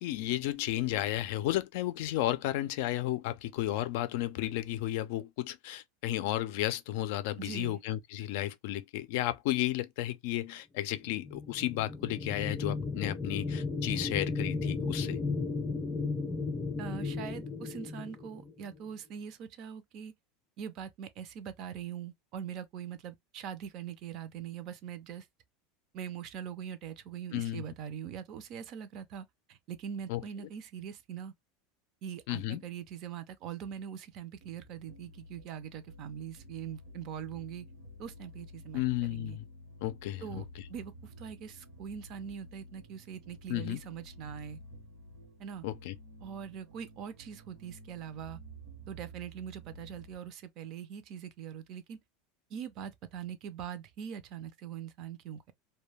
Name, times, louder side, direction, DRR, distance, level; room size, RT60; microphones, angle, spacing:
voice 1, 0.0-15.2 27.3-27.6 30.1-30.2 32.3-32.6 38.7-39.5 39.8-40.3 43.5-43.8 45.6-45.9, left 14 dB, 70° left, 0.4 m, -33 dB
voice 2, 7.4-7.8 16.8-20.1 20.6-25.3 25.9-31.3 32.0-37.7 38.0-39.4 40.2-40.4 40.7-44.6 45.4-45.6 46.2-48.4 48.9-52.0 52.5-55.5, right 8 dB, 50° right, 0.5 m, -42 dB
sound 1, 11.2-18.8, left 4 dB, 20° left, 0.6 m, -35 dB
sound 2, 34.4-50.2, equal, 75° right, 0.9 m, -51 dB
2.3 x 2.2 x 3.2 m
supercardioid pair, 130°, 0 cm